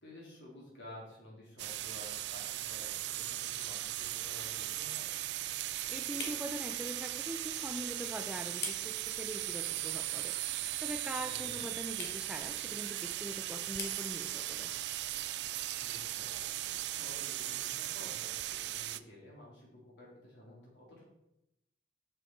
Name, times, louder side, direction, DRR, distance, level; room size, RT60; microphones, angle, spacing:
voice 1, 0.0-5.1 11.2-11.7 15.8-21.0, left 1 dB, 85° left, -4 dB, 3.2 m, -53 dB
sound 1, 1.6-19.0, right 14 dB, 75° right, 0.4 m, -38 dB
sound 2, 2.6-17.4, left 3 dB, 70° left, 1.6 m, -52 dB
voice 2, 5.9-14.7, equal, 5° right, 6 dB, 0.4 m, -43 dB
7.0 x 6.0 x 4.5 m, 0.88 s
head